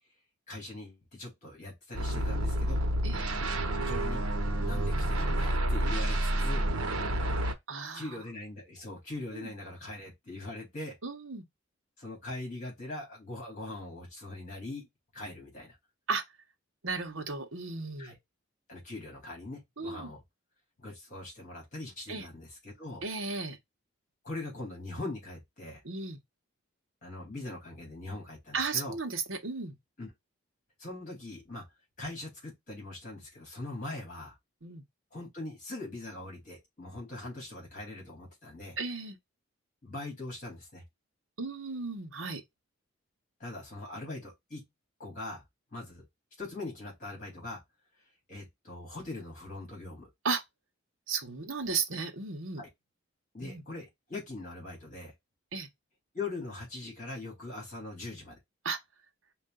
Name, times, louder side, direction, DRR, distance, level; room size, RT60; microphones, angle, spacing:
voice 1, 0.5-2.8 3.8-4.3 4.6-6.6 7.9-11.0 12.0-14.9 15.1-15.8 18.0-18.2 18.7-20.2 20.8-23.0 24.2-25.8 27.0-29.0 30.0-30.1 30.8-31.6 32.0-34.4 35.1-38.8 39.8-40.8 43.4-44.6 45.0-45.4 45.7-46.0 46.4-47.6 48.3-50.1 52.6-52.7 53.3-55.1 56.1-58.4, left 2 dB, 35° left, 3.2 m, -41 dB
sound 1, 1.9-7.5, right 1 dB, 85° right, 1.1 m, -29 dB
voice 2, 7.7-8.2 9.3-9.5 11.0-11.5 16.1-16.2 16.8-18.2 19.8-20.1 22.1-22.3 23.0-23.6 25.8-26.2 28.5-29.8 34.6-34.8 38.8-39.2 41.4-42.4 50.2-50.4 51.1-52.6 53.4-53.6 55.5-55.7 58.6-58.8, right 4 dB, 65° right, 1.1 m, -35 dB
5.4 x 2.6 x 3.8 m
head